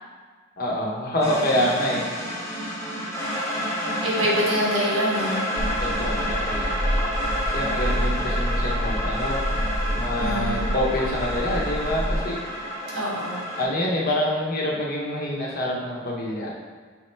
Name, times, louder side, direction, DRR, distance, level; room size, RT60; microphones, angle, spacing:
voice 1, 0.6-2.0 5.8-6.8 7.5-9.4 9.9-12.4 13.6-16.5, left 1 dB, 45° left, -3 dB, 0.9 m, -26 dB
sound 1, 1.2-13.6, equal, 15° left, 0.7 m, -29 dB
voice 2, 4.0-5.4 10.2-10.6 12.9-13.5, equal, 85° right, -5 dB, 1.3 m, -25 dB
sound 2, 5.6-12.2, equal, 40° right, 1.0 m, -28 dB
3.5 x 3.2 x 4.5 m, 1.5 s
head